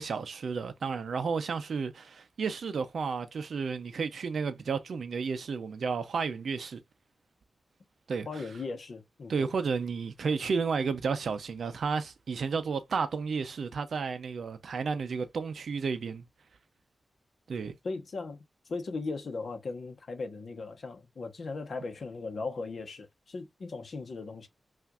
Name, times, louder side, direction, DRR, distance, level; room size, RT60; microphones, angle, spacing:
voice 1, 0.0-6.8 8.1-8.4 9.3-16.2 17.5-17.7, right 5 dB, 80° right, 0.5 m, -32 dB
voice 2, 8.3-9.5 17.8-18.4 18.7-24.5, left 3 dB, 65° left, 1.0 m, -38 dB
5.6 x 2.5 x 2.4 m
wide cardioid pair, 115°, 0 cm